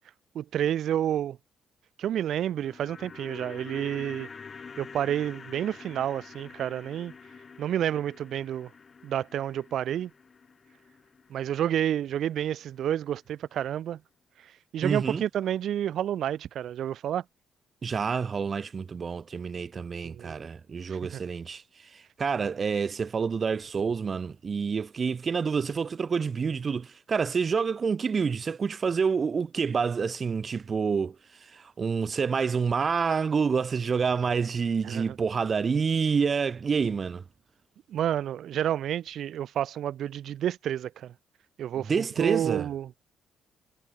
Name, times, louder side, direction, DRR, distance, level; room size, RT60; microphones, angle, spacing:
voice 1, 0.3-1.4 2.0-4.3 4.8-7.1 7.6-8.7 9.0-10.1 11.3-14.0 14.4-17.2 20.0-20.3 20.9-21.2 34.8-35.2 37.9-41.1 41.6-43.1, right 10 dB, 70° right, 3.2 m, -30 dB
sound 1, 2.4-12.6 12.9-13.0, left 5 dB, 40° left, 5.8 m, -47 dB
voice 2, 14.8-15.2 17.8-21.6 21.9-31.1 31.4-37.2 41.9-42.7, right 5 dB, 40° right, 3.3 m, -28 dB
cardioid pair, 90°, 0 cm